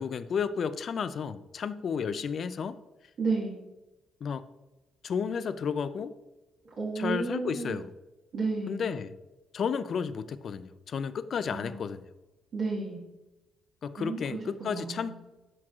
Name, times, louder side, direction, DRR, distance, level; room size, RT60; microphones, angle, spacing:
voice 1, 0.0-2.7 4.2-4.4 5.0-6.1 7.0-7.9 8.7-9.1 9.5-12.0 13.8-15.1, left 6 dB, 55° left, 13 dB, 0.4 m, -32 dB
voice 2, 3.2-3.6 6.8-7.8 8.3-8.8 11.5-11.8 12.5-13.0 14.0-15.1, right 3 dB, 60° right, -6 dB, 1.6 m, -32 dB
10.5 x 4.5 x 2.4 m, 1.1 s
cardioid pair, 90°, 0 cm